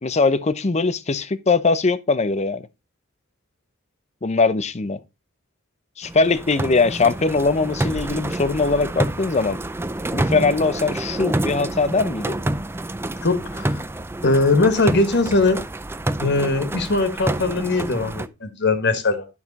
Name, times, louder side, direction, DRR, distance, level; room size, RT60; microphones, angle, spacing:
voice 1, 0.0-2.6 4.2-5.0 6.0-9.6 10.1-12.4, left 3 dB, 35° left, 0.6 m, -21 dB
sound 1, 6.0-18.3, right 1 dB, 10° right, 0.4 m, -28 dB
voice 2, 13.2-13.8 14.2-15.6 16.2-19.3, left 3 dB, 55° left, 1.3 m, -20 dB
11.0 x 6.0 x 4.0 m
head